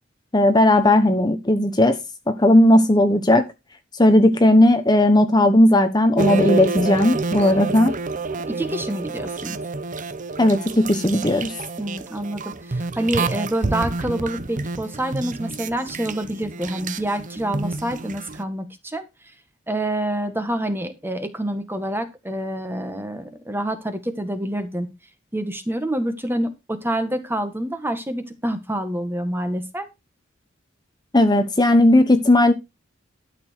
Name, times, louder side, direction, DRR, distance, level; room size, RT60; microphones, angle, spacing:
voice 1, 0.3-2.0 2.3-3.5 4.0-7.9 10.4-11.5 31.1-32.5, left 1 dB, 20° left, 1.1 m, -16 dB
sound 1, 6.2-18.4, right 3 dB, 40° right, 0.8 m, -28 dB
voice 2, 8.5-9.6 11.8-19.0 19.7-24.9 25.3-29.9, right 1 dB, 10° right, 1.6 m, -27 dB
12.5 x 7.0 x 4.6 m
head